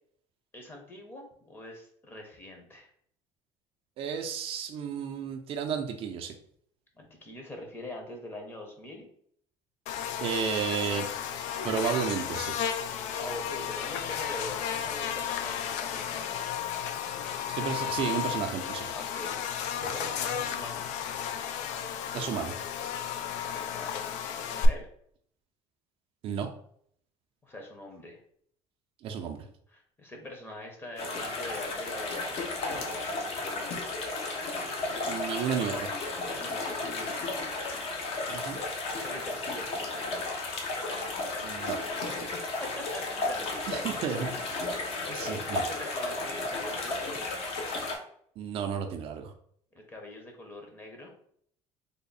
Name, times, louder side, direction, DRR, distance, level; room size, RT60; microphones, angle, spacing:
voice 1, 0.5-2.9 6.9-9.0 13.1-16.3 18.9-20.8 23.3-24.2 24.5-24.9 27.4-28.2 29.7-33.7 36.2-37.4 38.9-40.1 42.2-44.1 45.0-47.2 49.7-51.1, left 1 dB, 15° left, 2 dB, 0.7 m, -43 dB
voice 2, 4.0-6.3 10.2-11.1 11.6-12.6 17.5-18.9 22.1-22.5 26.2-26.5 29.0-29.5 35.1-35.9 38.3-38.6 41.4-41.8 43.7-44.7 45.1-45.6 48.4-49.3, right 7 dB, 50° right, 5 dB, 0.4 m, -32 dB
Buzz, 9.9-24.7, left 9 dB, 75° left, 0.4 m, -33 dB
sound 1, 31.0-48.0, left 2 dB, 55° left, 0.8 m, -34 dB
3.4 x 2.0 x 3.9 m, 0.64 s
cardioid pair, 155°, 12 cm